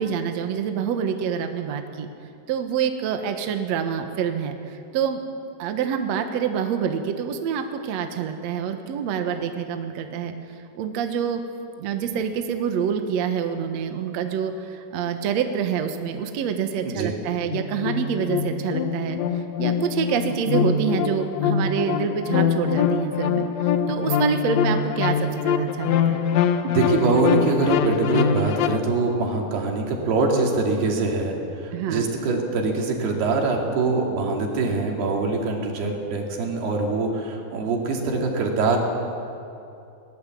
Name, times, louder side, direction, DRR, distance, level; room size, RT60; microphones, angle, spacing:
voice 1, 0.0-2.1 2.5-5.2 5.6-10.3 10.8-11.4 11.8-26.3 31.7-32.0, right 7 dB, 60° right, 6 dB, 1.9 m, -27 dB
sound 1, 17.5-28.8, left 7 dB, 80° left, 1.5 m, -24 dB
voice 2, 26.6-38.8, right 3 dB, 85° right, 1 dB, 4.5 m, -23 dB
21.0 x 19.0 x 7.7 m, 2.7 s
omnidirectional pair, 4.5 m